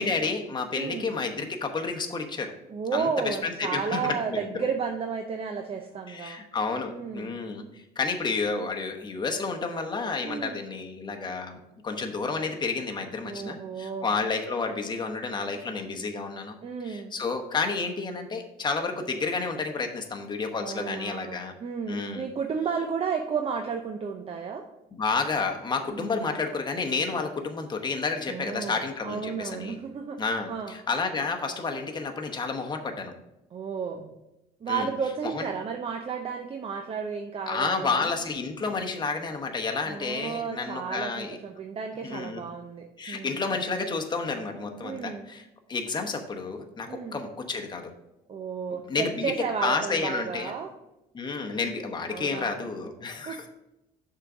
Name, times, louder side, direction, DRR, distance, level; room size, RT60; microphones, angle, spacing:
voice 1, 0.0-2.5 2.9-4.6 6.1-11.6 11.8-16.6 16.8-21.5 21.9-22.2 24.9-29.8 30.2-33.1 34.7-34.9 35.3-35.4 37.5-41.4 42.0-42.4 43.0-45.4 45.7-47.9 48.7-49.3 49.6-50.5 51.1-53.5, left 4 dB, 25° left, 3 dB, 1.0 m, -30 dB
voice 2, 0.7-1.1 2.7-6.4 6.9-7.4 10.2-10.6 13.2-14.1 16.6-17.1 20.6-24.6 25.9-26.2 28.3-30.2 30.5-30.8 33.5-34.1 34.6-38.1 39.8-43.4 44.8-45.3 46.9-47.2 48.3-50.7 52.1-52.6 53.3-53.5, right 6 dB, 35° right, 4 dB, 0.6 m, -33 dB
6.4 x 3.8 x 5.9 m, 0.92 s
cardioid pair, 110°, 17 cm